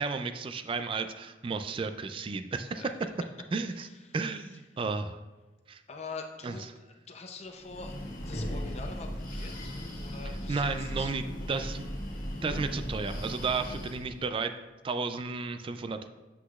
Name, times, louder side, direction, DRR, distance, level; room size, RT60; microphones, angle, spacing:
voice 1, 0.0-2.8 3.5-3.9 4.1-5.2 5.7-5.8 6.4-6.5 10.5-11.2 11.5-11.8 12.4-16.1, right 4 dB, 30° right, 8 dB, 0.3 m, -33 dB
voice 2, 2.6-2.9 3.6-4.6 5.9-9.7 10.0-11.2 11.5-11.7, left 4 dB, 35° left, 4 dB, 0.5 m, -45 dB
Breathing, 7.6-14.2, equal, 50° left, 1.4 m, -37 dB
8.0 x 7.9 x 2.4 m, 1.2 s
head